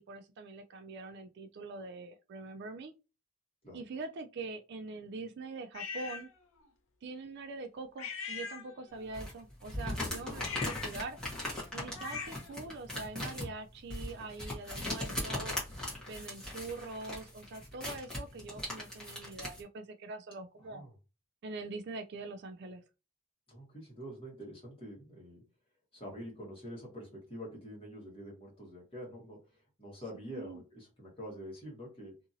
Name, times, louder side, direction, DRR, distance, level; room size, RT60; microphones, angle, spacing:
voice 1, 0.0-2.9 3.7-6.3 7.0-11.2 11.7-15.6 16.1-20.9 21.4-22.8 30.3-30.6, right 3 dB, 50° right, 0.3 m, -43 dB
Angry cat, 5.7-6.3 8.0-9.1 10.3-12.6, left 5 dB, 70° left, 0.7 m, -42 dB
sound 1, 9.1-19.6, left 1 dB, 5° left, 1.1 m, -39 dB
voice 2, 9.6-10.2 20.6-20.9 23.5-25.4 25.9-32.2, equal, 25° left, 1.4 m, -46 dB
2.8 x 2.7 x 2.6 m
head